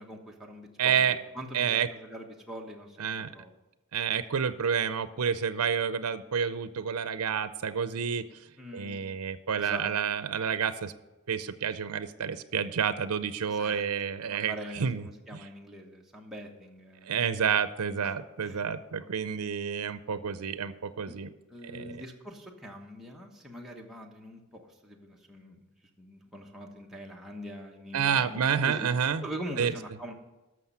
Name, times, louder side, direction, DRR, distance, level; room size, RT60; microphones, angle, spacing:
voice 1, 0.0-3.5 8.6-9.2 9.6-10.2 13.4-13.8 14.3-17.1 17.9-18.1 18.4-18.6 21.1-21.2 21.5-25.6 26.0-28.9 29.2-30.1, equal, ahead, -2 dB, 1.1 m, -43 dB
voice 2, 0.8-1.2 1.5-1.9 3.0-3.3 3.9-8.2 8.7-10.9 11.3-15.1 15.3-15.5 17.0-21.3 21.6-22.0 27.9-29.2 29.6-29.7, right 7 dB, 85° right, 13 dB, 0.5 m, -29 dB
13.0 x 6.3 x 5.6 m, 1.1 s
head